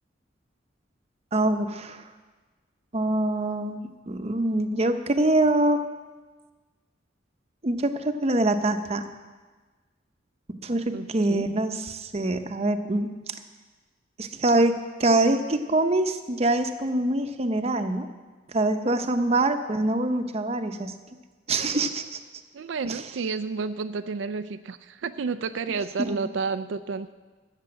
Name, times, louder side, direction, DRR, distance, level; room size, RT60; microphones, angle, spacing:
voice 1, 1.3-2.0 2.9-5.8 7.6-9.0 10.6-13.4 14.2-18.1 18.5-20.9 21.5-22.2 22.8-23.0 26.1-26.2, right 2 dB, 35° right, 7 dB, 0.8 m, -24 dB
voice 2, 10.9-11.5 22.5-27.1, right 4 dB, 80° right, 11 dB, 0.4 m, -31 dB
14.0 x 6.7 x 8.6 m, 1.3 s
head